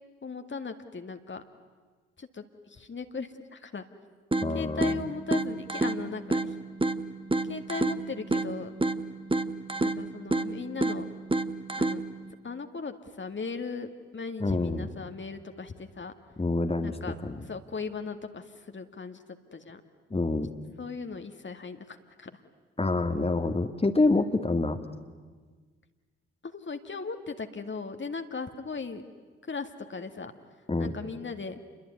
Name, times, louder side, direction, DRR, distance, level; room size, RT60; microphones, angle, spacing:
voice 1, 0.2-1.4 2.2-3.8 4.5-6.6 7.4-8.7 9.8-11.1 11.8-12.0 12.4-16.1 16.8-17.2 17.5-19.2 19.5-19.8 20.8-22.4 26.4-29.0 29.4-30.3 30.8-31.6, left 4 dB, 35° left, 7 dB, 2.1 m, -38 dB
sound 1, 4.3-12.3, right 2 dB, 15° right, 1.6 m, -30 dB
voice 2, 4.4-5.0 14.4-14.8 16.4-17.0 17.2-17.4 20.1-20.5 22.8-24.8 30.7-30.9, left 2 dB, 20° left, 6 dB, 1.9 m, -26 dB
28.5 x 22.0 x 9.5 m, 1.5 s
hypercardioid pair, 45°, 32 cm